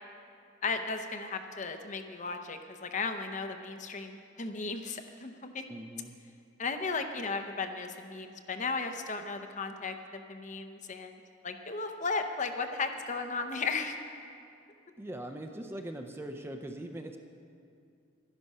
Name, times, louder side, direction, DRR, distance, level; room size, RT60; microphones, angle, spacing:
voice 1, 0.6-5.6 6.6-11.2 11.4-14.0, left 4 dB, 35° left, 7 dB, 0.7 m, -35 dB
voice 2, 5.7-6.2 15.0-17.2, right 1 dB, 10° right, 5 dB, 0.5 m, -41 dB
12.0 x 11.0 x 5.5 m, 2.4 s
head